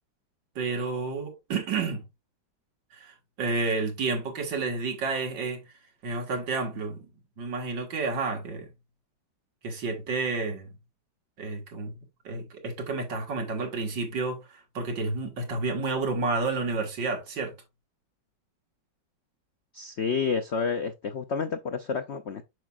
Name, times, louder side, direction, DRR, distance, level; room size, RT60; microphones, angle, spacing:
voice 1, 0.6-2.0 2.9-5.6 6.0-7.0 7.4-8.7 9.6-10.7 11.4-11.9 12.2-14.4 14.7-17.5, right 3 dB, 70° right, 2.4 m, -30 dB
voice 2, 19.7-22.4, left 5 dB, 75° left, 0.6 m, -29 dB
7.8 x 6.0 x 2.4 m
omnidirectional pair, 2.1 m